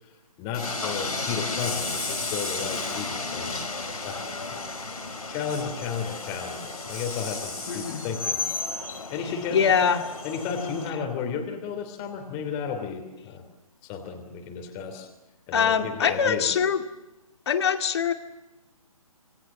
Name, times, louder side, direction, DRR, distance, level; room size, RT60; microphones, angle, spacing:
voice 1, 0.4-3.6 4.0-4.6 5.3-8.4 9.1-9.8 10.2-13.4 13.8-15.1 15.5-16.6, left 6 dB, 20° left, 4 dB, 2.9 m, -33 dB
Train, 0.5-10.9, left 3 dB, 80° left, 4.4 m, -33 dB
voice 2, 7.7-8.1 9.5-10.0 15.5-16.8 17.5-18.1, left 7 dB, 45° left, 7 dB, 2.2 m, -23 dB
27.0 x 21.0 x 7.3 m, 1.0 s
figure-of-eight pair, 145°, 19 cm